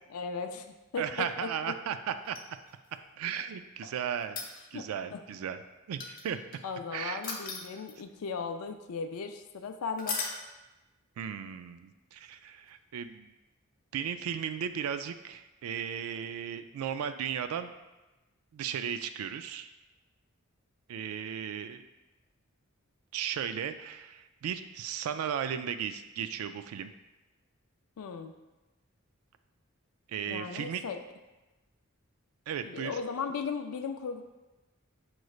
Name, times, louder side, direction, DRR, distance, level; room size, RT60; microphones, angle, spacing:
voice 1, 0.1-0.7 0.9-1.5 3.3-3.4 3.8-3.9 4.7-5.2 6.3-6.4 6.6-10.2 28.0-28.3 30.3-31.0 32.6-34.2, left 5 dB, 90° left, 6 dB, 0.4 m, -37 dB
voice 2, 1.0-2.4 3.2-4.4 4.7-5.6 5.9-6.4 6.9-7.3 11.2-13.3 13.9-17.7 18.5-19.7 20.9-21.9 23.1-26.9 30.1-30.8 32.5-33.0, right 8 dB, 85° right, 11 dB, 0.3 m, -35 dB
sound 1, 2.2-3.0 4.2-4.9 6.0-6.6 7.2-8.2 10.0-10.4 12.7-12.8, left 4 dB, 40° left, 0.6 m, -37 dB
6.1 x 3.1 x 2.4 m, 1.1 s
head